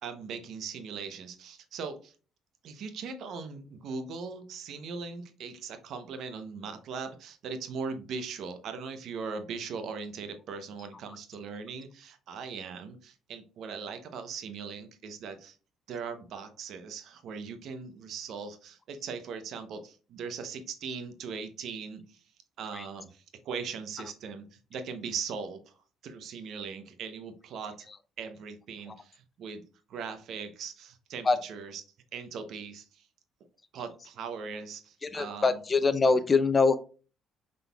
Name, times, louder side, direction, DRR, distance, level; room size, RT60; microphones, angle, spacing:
voice 1, 0.0-2.1 2.6-15.6 15.9-22.2 22.6-25.6 26.0-27.9 28.2-29.6 29.9-31.8 32.1-33.1 33.7-35.5, right 5 dB, 70° right, 9 dB, 0.7 m, -39 dB
voice 2, 35.0-36.8, left 4 dB, 30° left, 12 dB, 0.5 m, -24 dB
5.7 x 3.7 x 2.3 m, 0.37 s
supercardioid pair, 70°, 0 cm